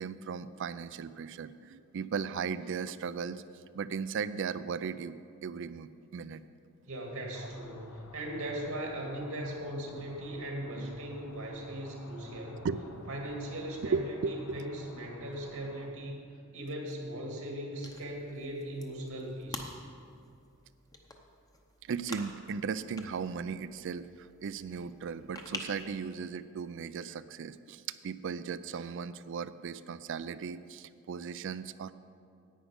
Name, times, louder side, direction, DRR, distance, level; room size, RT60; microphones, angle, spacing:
voice 1, 0.0-3.4 3.7-6.4 7.4-7.5 10.8-10.9 12.6-13.1 13.8-14.6 21.9-31.9, right 6 dB, 60° right, 15 dB, 0.4 m, -37 dB
voice 2, 6.8-12.6 13.1-16.2 16.5-19.7, right 1 dB, 80° right, 0 dB, 2.1 m, -39 dB
sound 1, 7.3-15.9, left 2 dB, 85° left, 0.9 m, -53 dB
sound 2, 17.8-26.0, left 2 dB, 15° left, 0.8 m, -48 dB
10.0 x 9.0 x 5.2 m, 2.4 s
head